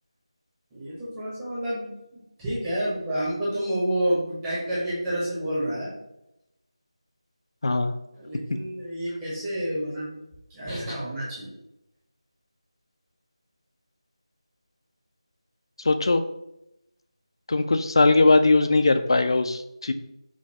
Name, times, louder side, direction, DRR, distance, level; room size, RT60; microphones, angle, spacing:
voice 1, 0.7-5.9 8.1-10.2 10.5-11.6, right 1 dB, 10° right, -10 dB, 0.8 m, -29 dB
voice 2, 7.6-7.9 15.8-16.2 17.5-19.9, left 3 dB, 50° left, 9 dB, 0.3 m, -20 dB
5.1 x 2.3 x 2.7 m, 0.85 s
figure-of-eight pair, 165°, 3 cm